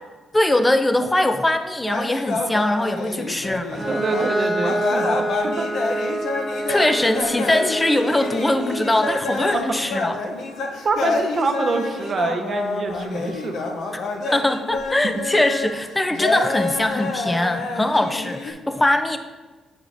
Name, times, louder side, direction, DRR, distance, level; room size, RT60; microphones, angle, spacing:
voice 1, 0.3-3.8 6.7-10.2 13.9-14.0 14.3-19.2, left 1 dB, 15° left, 8 dB, 0.5 m, -21 dB
sound 1, 1.9-15.7 16.1-18.5, left 3 dB, 70° left, 0.7 m, -27 dB
Bowed string instrument, 3.7-9.3, right 1 dB, 25° right, 1.5 m, -27 dB
voice 2, 3.9-5.7 9.5-9.8 10.8-13.7 15.2-15.3, right 4 dB, 45° right, 5 dB, 0.7 m, -26 dB
8.3 x 4.8 x 2.6 m, 1.3 s
cardioid pair, 90°, 0 cm